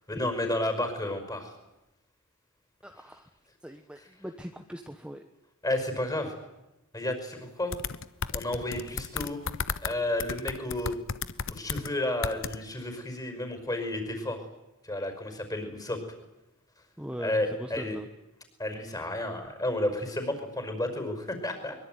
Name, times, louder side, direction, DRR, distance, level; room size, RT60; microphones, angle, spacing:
voice 1, 0.1-1.5 4.0-4.1 5.6-6.3 6.9-7.7 8.3-9.4 9.8-10.9 11.5-14.4 14.8-16.0 17.2-18.0 18.6-21.8, left 1 dB, 20° left, 6 dB, 5.4 m, -31 dB
voice 2, 2.8-3.3 3.6-5.2 17.0-18.1, equal, 5° right, 5 dB, 1.2 m, -40 dB
sound 1, 7.7-9.9 10.2-11.9 12.2-12.6, left 6 dB, 65° left, 1.0 m, -33 dB
23.5 x 22.5 x 9.3 m, 0.97 s
head